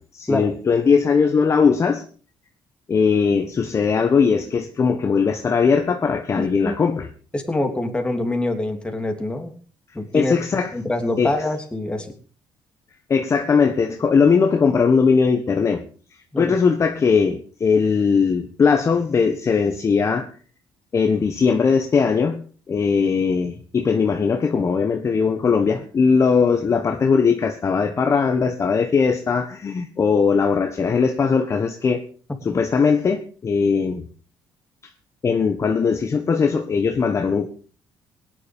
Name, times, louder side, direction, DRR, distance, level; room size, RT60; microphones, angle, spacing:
voice 1, 0.0-2.0 2.9-7.1 10.1-10.7 11.2-11.3 13.1-15.8 16.4-20.3 20.9-22.4 22.7-32.0 32.4-34.1 35.2-37.5, left 5 dB, 35° left, 1.4 m, -19 dB
voice 2, 6.4-6.8 7.3-9.5 9.9-10.3 10.7-12.1 16.3-16.5, left 2 dB, 15° left, 3.2 m, -25 dB
18.0 x 10.5 x 5.4 m
cardioid pair, 105°, 8 cm